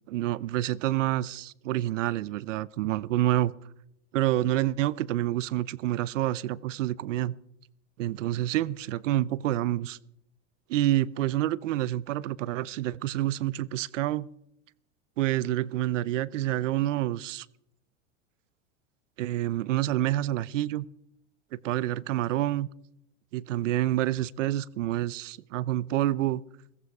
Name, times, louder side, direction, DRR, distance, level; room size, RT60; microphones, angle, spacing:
voice 1, 0.1-3.5 4.1-7.3 8.0-10.0 10.7-14.3 15.2-17.5 19.2-20.9 21.6-22.7 23.3-26.4, right 14 dB, 85° right, 22 dB, 0.7 m, -28 dB
17.0 x 15.0 x 4.8 m, 0.77 s
supercardioid pair, 140°, 36 cm